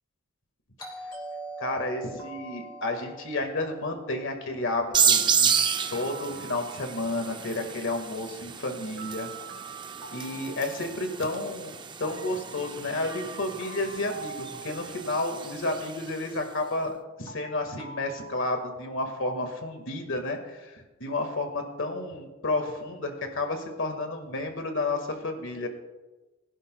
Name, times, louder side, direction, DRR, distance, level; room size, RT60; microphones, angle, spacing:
Doorbell, 0.8-5.4, right 2 dB, 20° left, 3.1 m, -43 dB
voice 1, 1.6-5.5 5.9-9.3 10.1-11.7 12.0-25.7, left 2 dB, 60° left, 5 dB, 1.8 m, -31 dB
sound 1, 2.2-3.3 5.0-7.3 9.0-11.3 13.1-15.4 17.3-18.3, right 4 dB, 85° right, 2.0 m, -44 dB
sound 2, 4.9-16.3, right 7 dB, 20° right, 0.4 m, -31 dB
21.5 x 11.0 x 2.3 m, 1.1 s
head